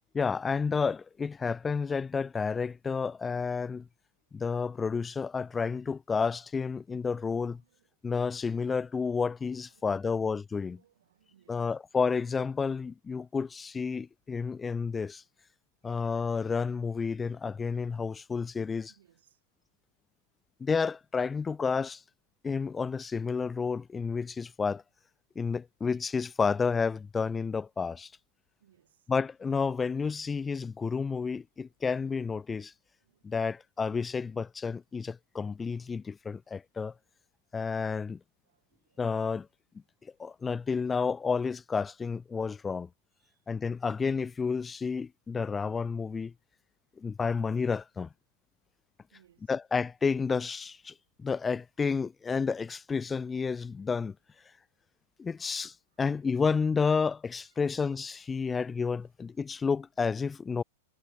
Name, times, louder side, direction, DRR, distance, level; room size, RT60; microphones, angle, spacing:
voice 1, 0.1-3.9 4.3-7.6 8.0-10.8 11.5-15.2 15.8-18.9 20.6-22.0 22.4-24.8 25.4-28.1 29.1-32.7 33.2-36.9 37.5-38.2 39.0-39.5 40.0-42.9 43.5-46.3 47.0-48.1 49.5-54.2 55.2-60.6, left 5 dB, 15° left, 0.3 m, -31 dB
voice 2, 7.3-7.9 9.6-10.2 10.5-11.8 18.9-19.4 28.6-29.1 30.7-30.8 33.0-33.3 38.4-39.0 43.2-43.4 49.1-49.5 56.1-56.2 57.4-57.6, right 11 dB, 75° right, 2.6 m, -67 dB
hypercardioid pair, 105°, 0 cm